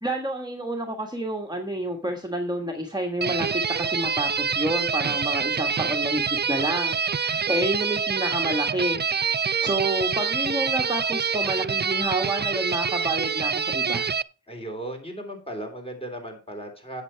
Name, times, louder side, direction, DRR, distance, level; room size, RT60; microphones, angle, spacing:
voice 1, 0.0-9.1 9.5-14.1, right 1 dB, 10° right, 2 dB, 1.4 m, -29 dB
sound 1, 3.2-14.2, right 6 dB, 30° right, 0.4 m, -26 dB
voice 2, 14.5-17.0, right 1 dB, 15° left, 3 dB, 3.5 m, -36 dB
8.7 x 7.7 x 4.6 m, 0.34 s
wide cardioid pair, 65°, 37 cm